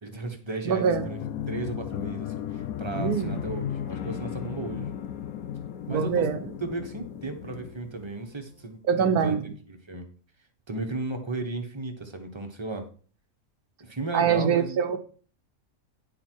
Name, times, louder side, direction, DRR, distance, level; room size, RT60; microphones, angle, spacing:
voice 1, 0.0-1.2 1.5-4.9 5.9-6.3 6.6-9.4 9.7-10.1 10.7-12.9 13.8-14.8, right 3 dB, 20° right, 5 dB, 1.1 m, -35 dB
voice 2, 0.6-1.1 2.9-3.3 5.9-6.5 8.9-9.4 14.1-15.0, right 7 dB, 85° right, 8 dB, 1.4 m, -24 dB
sound 1, 0.8-8.4, left 9 dB, 75° left, 1.1 m, -35 dB
10.0 x 4.8 x 4.6 m, 0.42 s
omnidirectional pair, 1.6 m